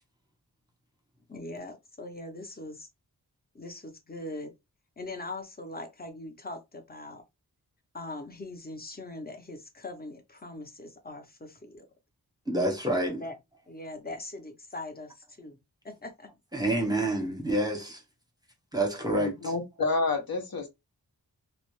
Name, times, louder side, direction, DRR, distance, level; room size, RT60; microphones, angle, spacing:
voice 1, 1.3-2.9 3.5-4.5 5.0-7.2 7.9-11.9 13.0-13.3 13.7-15.6 15.8-16.3, left 2 dB, 25° left, 0.7 m, -41 dB
voice 2, 12.5-13.2 16.5-18.0 18.7-19.5, right 1 dB, 10° right, 0.8 m, -28 dB
voice 3, 19.1-20.7, left 3 dB, 65° left, 0.8 m, -29 dB
2.4 x 2.0 x 3.0 m
wide cardioid pair, 75°, 40 cm